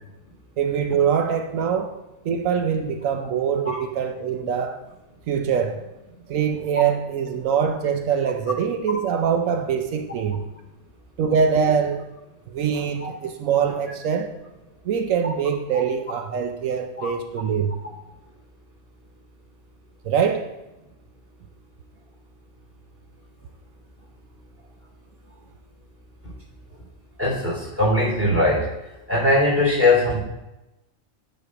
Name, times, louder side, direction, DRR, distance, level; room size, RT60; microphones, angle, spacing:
voice 1, 0.6-1.9 2.2-4.8 5.3-5.8 6.3-10.4 11.2-12.0 12.5-14.3 14.8-17.7 20.0-20.5, right 7 dB, 85° right, 6 dB, 1.1 m, -23 dB
voice 2, 27.2-28.7 29.1-30.2, left 2 dB, 10° right, -4 dB, 3.4 m, -20 dB
9.6 x 4.4 x 4.9 m, 0.97 s
omnidirectional pair, 1.3 m